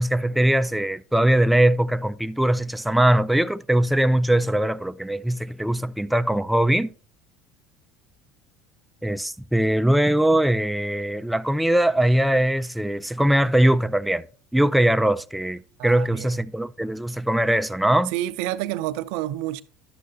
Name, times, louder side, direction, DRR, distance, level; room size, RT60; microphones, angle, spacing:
voice 1, 0.0-6.9 9.0-14.3 14.5-18.1, right 1 dB, 5° right, 0.3 m, -21 dB
voice 2, 15.8-16.3 18.1-19.6, right 14 dB, 75° right, 0.4 m, -29 dB
11.0 x 7.6 x 2.7 m
supercardioid pair, 100°, 0 cm